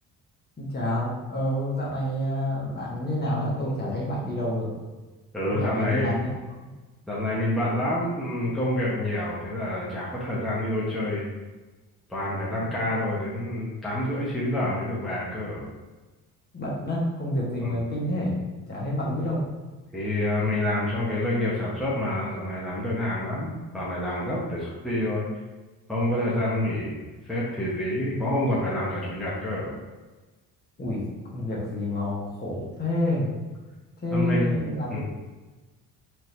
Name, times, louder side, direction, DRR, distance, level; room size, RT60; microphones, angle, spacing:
voice 1, 0.6-4.8 5.4-6.3 16.5-19.5 30.8-31.0 31.3-33.3 34.0-35.0, left 1 dB, 25° left, -5 dB, 1.2 m, -28 dB
voice 2, 5.3-6.1 7.1-11.3 12.1-15.6 17.6-17.8 19.9-25.3 25.9-29.7 34.1-34.5 34.9-35.0, left 1 dB, ahead, -8 dB, 0.9 m, -28 dB
4.4 x 2.7 x 3.2 m, 1.2 s
cardioid pair, 110°, 38 cm